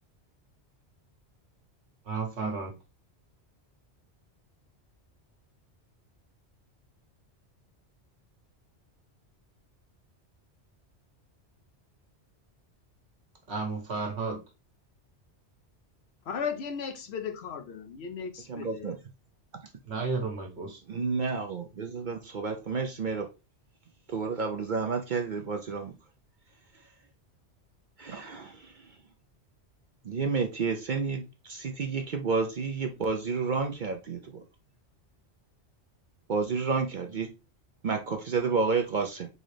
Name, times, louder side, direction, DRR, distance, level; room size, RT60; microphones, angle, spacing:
voice 1, 2.0-2.7 13.5-14.4 19.9-20.8, right 4 dB, 70° right, 1.5 m, -32 dB
voice 2, 16.2-19.0, left 6 dB, 70° left, 1.0 m, -36 dB
voice 3, 18.5-18.9 20.9-23.3 24.1-25.9 28.0-28.5 30.1-34.2 36.3-37.3 37.8-39.3, right 4 dB, 55° right, 0.6 m, -30 dB
4.0 x 3.7 x 3.2 m
omnidirectional pair, 1.2 m